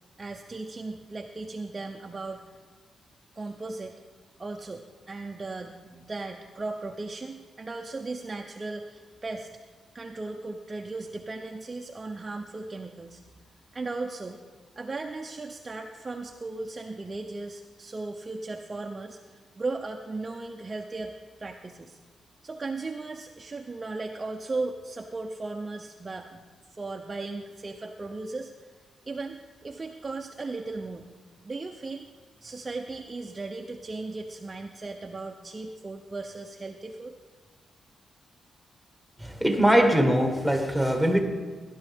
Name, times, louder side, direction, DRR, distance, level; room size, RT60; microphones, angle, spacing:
voice 1, 0.2-2.4 3.4-3.9 4.4-9.5 9.9-13.2 13.7-14.4 14.8-21.1 21.4-22.0 22.4-26.5 26.7-28.5 29.1-31.1 31.4-32.1 32.4-37.1, right 3 dB, 25° right, 3 dB, 0.6 m, -36 dB
voice 2, 39.2-41.2, equal, 5° left, 3 dB, 1.5 m, -22 dB
18.0 x 11.0 x 3.5 m, 1.5 s
wide cardioid pair, 145°, 0 cm